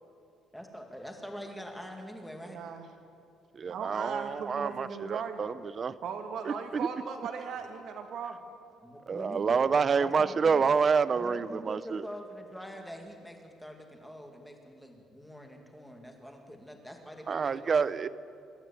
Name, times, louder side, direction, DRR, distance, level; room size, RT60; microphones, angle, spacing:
voice 1, 0.5-2.6 8.8-9.7 10.0-10.7 11.1-18.0, equal, ahead, 2 dB, 2.3 m, -44 dB
voice 2, 2.4-2.9 3.7-5.4 6.0-8.4, right 6 dB, 55° right, 5 dB, 2.3 m, -38 dB
voice 3, 3.5-6.0 6.4-6.9 9.1-12.0 17.3-18.1, right 5 dB, 30° right, 16 dB, 0.6 m, -28 dB
25.0 x 13.0 x 8.4 m, 2.5 s
cardioid pair, 170°, 0 cm